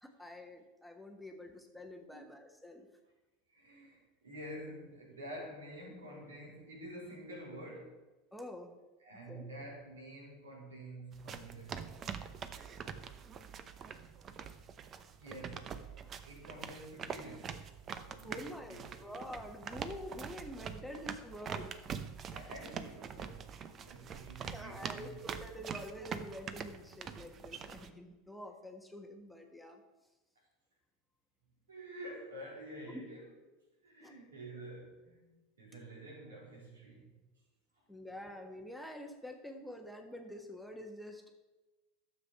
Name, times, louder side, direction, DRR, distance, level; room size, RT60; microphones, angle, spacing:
voice 1, 0.0-2.9 8.3-8.7 9.3-9.5 18.2-21.7 24.4-29.8 32.9-33.0 34.0-34.1 37.9-41.2, left 1 dB, ahead, 3 dB, 1.4 m, -47 dB
voice 2, 3.5-8.0 9.0-13.0 13.3-13.5 15.2-15.9 16.2-19.0 22.3-25.4 30.4-30.5 31.7-33.4 33.8-37.2, right 1 dB, 80° right, -3 dB, 3.9 m, -49 dB
sound 1, 11.1-27.9, right 7 dB, 35° right, 0.8 m, -44 dB
11.5 x 7.2 x 5.7 m, 1.1 s
hypercardioid pair, 80°, 0 cm